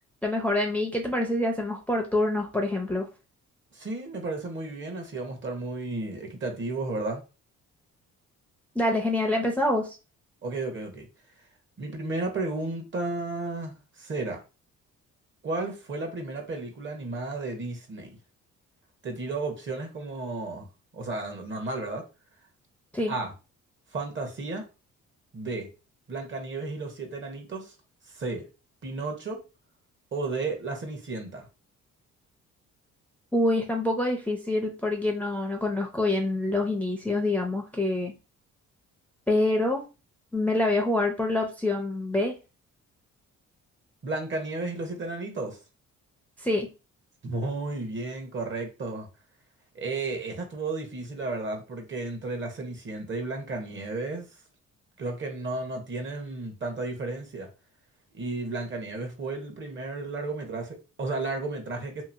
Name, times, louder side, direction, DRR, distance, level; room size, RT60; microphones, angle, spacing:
voice 1, 0.2-3.1 8.8-10.0 22.9-23.1 33.3-38.1 39.3-39.8 40.3-42.4 46.4-46.7, left 1 dB, 5° left, 0.5 m, -26 dB
voice 2, 3.7-7.2 10.4-11.1 11.8-14.4 15.4-18.1 19.0-20.7 20.9-22.0 23.1-23.3 23.9-24.7 25.3-25.7 26.1-27.7 28.1-28.4 28.8-29.4 30.1-31.5 44.0-45.6 47.2-49.1 49.7-54.3 55.0-57.5 58.1-62.0, right 3 dB, 40° right, 1.0 m, -33 dB
2.9 x 2.5 x 2.5 m
cardioid pair, 90°, 30 cm